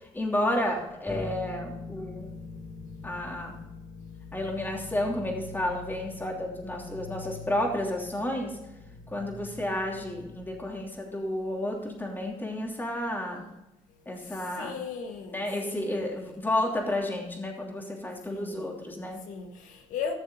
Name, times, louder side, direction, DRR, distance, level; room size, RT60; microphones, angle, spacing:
voice 1, 0.0-2.4 3.0-3.7 4.3-8.6 9.1-13.5 14.0-14.7 15.3-19.2, left 1 dB, 15° left, 3.1 m, -31 dB
Bass guitar, 1.1-10.9, left 3 dB, 15° right, 2.7 m, -45 dB
voice 2, 5.3-5.6 6.9-7.5 9.2-9.4 14.6-16.1 18.3-18.6 19.3-20.1, left 6 dB, 80° left, 1.4 m, -38 dB
15.0 x 6.9 x 3.9 m
cardioid pair, 90°, 13 cm